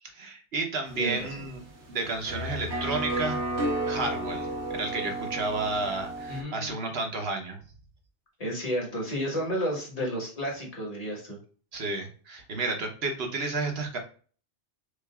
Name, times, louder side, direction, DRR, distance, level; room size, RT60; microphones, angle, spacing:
voice 1, 0.0-1.6 1.9-3.4 3.8-7.6 11.7-14.0, right 3 dB, 60° right, 3 dB, 1.1 m, -31 dB
sound 1, 0.9-6.4, right 1 dB, 90° right, 1.3 m, -33 dB
voice 2, 1.0-1.3 6.3-6.7 8.4-11.4, equal, 35° left, -2 dB, 1.5 m, -31 dB
6.4 x 2.6 x 2.3 m, 0.41 s
omnidirectional pair, 1.2 m